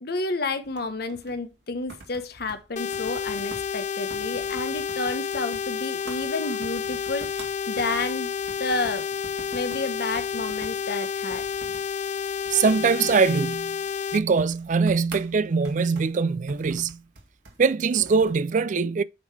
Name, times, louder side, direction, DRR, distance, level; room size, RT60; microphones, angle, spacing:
voice 1, 0.0-8.3 8.6-9.1 9.5-11.4, left 3 dB, 60° left, 1.1 m, -30 dB
sound 1, 0.6-18.5, right 2 dB, 70° right, 2.2 m, -47 dB
sound 2, 2.8-14.2, left 7 dB, 40° left, 0.5 m, -30 dB
voice 2, 12.5-13.8 14.1-17.0 17.6-19.0, right 5 dB, 45° right, 0.4 m, -22 dB
8.6 x 3.8 x 4.7 m
head